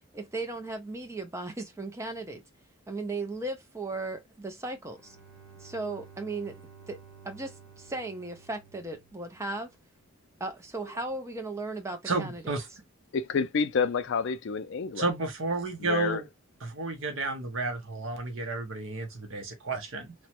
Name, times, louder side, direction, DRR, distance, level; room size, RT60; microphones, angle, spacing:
voice 1, 0.1-2.4 2.9-5.2 5.6-7.0 7.2-9.7 10.4-12.6, right 2 dB, 15° right, 0.5 m, -36 dB
Bowed string instrument, 4.7-9.7, right 6 dB, 45° right, 1.6 m, -53 dB
voice 2, 12.1-12.7 15.0-16.2 16.6-20.1, right 3 dB, 60° right, 0.7 m, -32 dB
voice 3, 13.1-15.1 15.8-16.2, left 5 dB, 55° left, 0.4 m, -28 dB
3.0 x 2.1 x 2.8 m
head